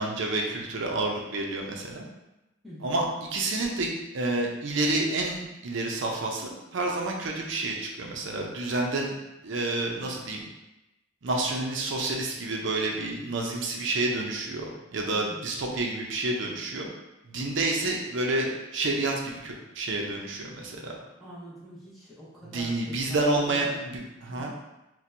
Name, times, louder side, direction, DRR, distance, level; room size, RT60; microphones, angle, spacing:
voice 1, 0.0-2.0 2.8-9.1 9.4-10.4 11.2-16.9 17.2-21.0 22.4-24.5, right 2 dB, 60° right, 0 dB, 0.6 m, -29 dB
voice 2, 2.6-2.9 15.1-15.7 21.2-24.5, equal, ahead, -9 dB, 0.7 m, -44 dB
4.2 x 2.2 x 2.6 m, 0.97 s
head